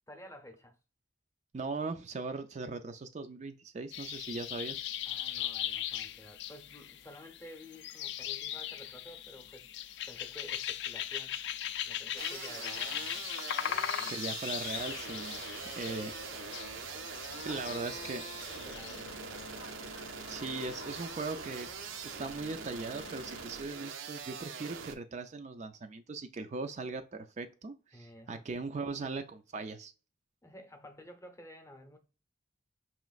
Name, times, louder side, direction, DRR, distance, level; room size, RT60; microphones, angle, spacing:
voice 1, 0.1-0.8 5.0-9.7 10.1-11.4 11.8-13.3 13.6-14.2 17.4-17.9 18.5-19.6 27.9-28.4 30.4-32.0, left 1 dB, 15° left, 0.7 m, -52 dB
voice 2, 1.5-4.9 14.1-15.4 15.8-16.1 16.5-16.6 17.4-18.2 20.3-21.7 22.0-29.9, right 3 dB, 35° right, 0.4 m, -39 dB
sound 1, 3.9-19.0, left 10 dB, 60° left, 0.3 m, -39 dB
sound 2, 12.2-25.0, right 6 dB, 90° right, 0.6 m, -43 dB
sound 3, 14.6-23.5, left 3 dB, 85° left, 0.7 m, -49 dB
5.4 x 3.0 x 2.4 m
head